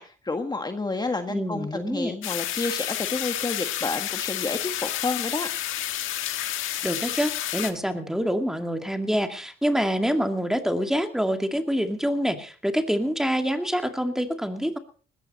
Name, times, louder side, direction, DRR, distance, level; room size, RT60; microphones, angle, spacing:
voice 1, 0.0-5.5, left 3 dB, 20° left, 6 dB, 1.6 m, -30 dB
voice 2, 1.3-2.1 6.8-14.8, equal, ahead, 7 dB, 2.2 m, -26 dB
sound 1, 2.2-7.7, left 13 dB, 90° left, 1.6 m, -30 dB
19.5 x 15.0 x 4.2 m, 0.40 s
cardioid pair, 90°, 20 cm